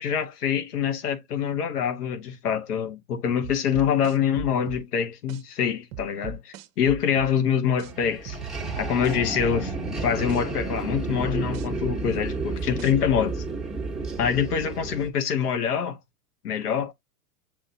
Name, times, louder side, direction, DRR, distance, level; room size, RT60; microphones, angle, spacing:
voice 1, 0.0-8.4 8.8-13.4 14.2-16.0 16.4-16.9, left 8 dB, 75° left, 0.9 m, -25 dB
sound 1, 3.4-4.8 5.3-5.4 5.9-7.3 7.8-7.9 8.3-9.8 10.3-10.4 10.9-12.3 12.8-12.9, right 6 dB, 40° right, 0.7 m, -38 dB
sound 2, 7.8-15.1, right 3 dB, ahead, 1.1 m, -31 dB
7.2 x 2.6 x 2.7 m
hypercardioid pair, 110°, 47 cm